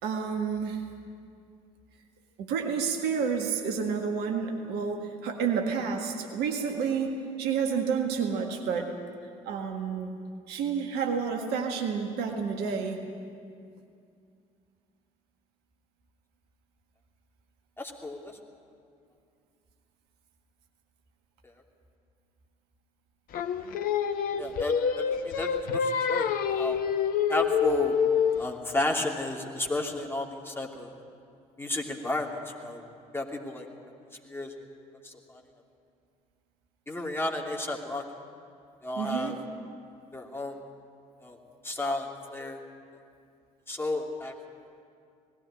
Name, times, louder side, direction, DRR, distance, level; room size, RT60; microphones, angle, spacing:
voice 1, 0.0-0.8 2.4-8.9 9.4-10.1 10.5-13.0 39.0-39.3, right 6 dB, 65° right, 4 dB, 1.7 m, -30 dB
voice 2, 17.8-18.3 24.4-26.8 27.3-28.0 28.4-30.9 31.6-32.8 33.1-33.7 34.2-34.5 35.0-35.4 36.9-38.0 38.8-39.4 40.1-40.6 41.2-41.4 41.6-42.6 43.7-44.3, left 2 dB, 15° left, 0 dB, 2.8 m, -32 dB
Singing, 23.3-28.5, left 7 dB, 55° left, 0.9 m, -27 dB
19.0 x 15.5 x 9.0 m, 2.4 s
figure-of-eight pair, 50°, 18 cm